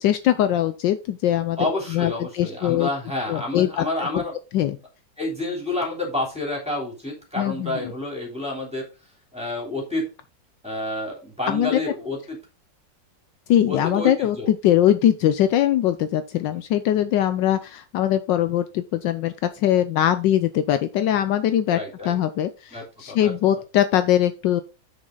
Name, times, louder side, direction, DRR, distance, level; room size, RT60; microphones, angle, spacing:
voice 1, 0.0-1.6 1.9-2.9 3.3-3.8 4.1-4.2 4.5-4.8 7.4-7.9 11.5-11.8 13.5-21.8 22.0-24.6, left 11 dB, 75° left, 11 dB, 1.3 m, -21 dB
voice 2, 1.6-4.3 5.2-8.9 9.3-10.1 10.6-12.4 13.7-14.5 16.4-16.6 21.7-22.1 22.7-23.3, left 2 dB, 5° right, -1 dB, 3.4 m, -29 dB
7.3 x 6.5 x 3.9 m, 0.30 s
omnidirectional pair, 2.1 m